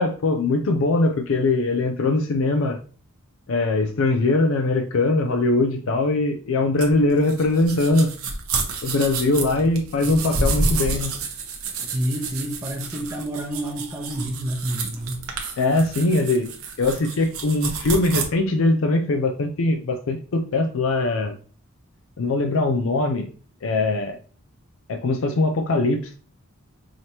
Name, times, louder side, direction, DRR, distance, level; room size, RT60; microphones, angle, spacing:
voice 1, 0.0-2.8 3.5-8.1 8.8-11.1 15.6-16.5 16.8-21.3 22.2-23.3 23.6-24.2 24.9-26.1, left 2 dB, 65° left, 4 dB, 0.4 m, -21 dB
sound 1, 6.8-18.2, right 3 dB, 75° right, 0.9 m, -29 dB
voice 2, 11.9-15.2, right 1 dB, 15° right, -2 dB, 0.7 m, -28 dB
4.9 x 2.9 x 2.8 m, 0.40 s
head